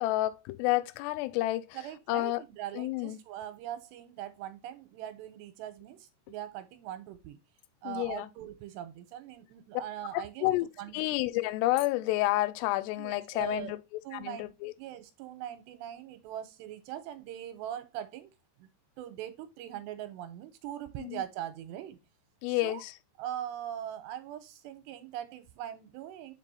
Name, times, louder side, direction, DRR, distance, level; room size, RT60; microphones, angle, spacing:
voice 1, 0.0-1.8 2.1-2.4 2.7-3.2 7.8-8.3 10.1-10.7 10.9-13.8 14.1-14.7 21.0-21.2 22.4-22.9, left 17 dB, 85° left, 2.6 m, -30 dB
voice 2, 1.7-7.4 7.8-10.5 10.8-11.0 13.0-13.7 14.0-14.5 14.8-18.3 18.6-18.7 19.0-22.0 22.5-22.8 23.2-26.3, right 11 dB, 85° right, 2.9 m, -41 dB
5.4 x 5.1 x 4.1 m
omnidirectional pair, 4.9 m